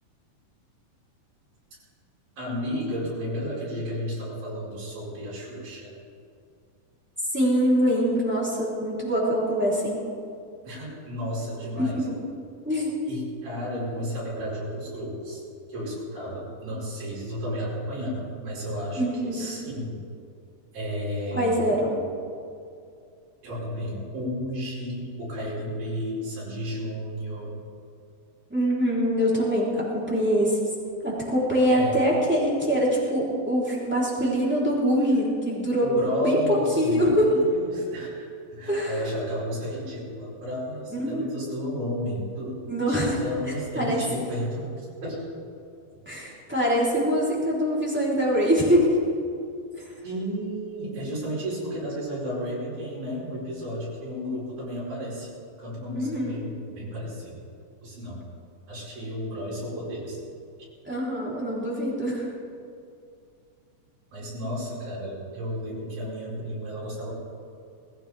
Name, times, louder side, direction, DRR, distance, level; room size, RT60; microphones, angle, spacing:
voice 1, 2.4-5.9 10.6-12.0 13.1-15.4 15.7-20.0 20.7-21.6 23.4-27.5 31.7-31.9 35.8-38.3 38.5-42.6 42.9-44.7 45.0-45.3 50.0-55.3 55.6-57.4 57.8-58.2 58.7-60.2 64.1-67.1, equal, 80° right, -7 dB, 6.6 m, -32 dB
voice 2, 7.3-10.0 11.8-12.2 12.6-12.9 19.0-19.5 21.3-22.0 28.5-30.7 31.0-35.9 36.2-36.4 36.8-37.3 38.7-39.0 41.0-41.5 42.7-43.2 43.7-44.0 46.0-49.0 55.9-56.4 60.8-62.3, equal, 5° right, -6 dB, 3.2 m, -24 dB
20.5 x 16.0 x 3.5 m, 2.4 s
omnidirectional pair, 4.2 m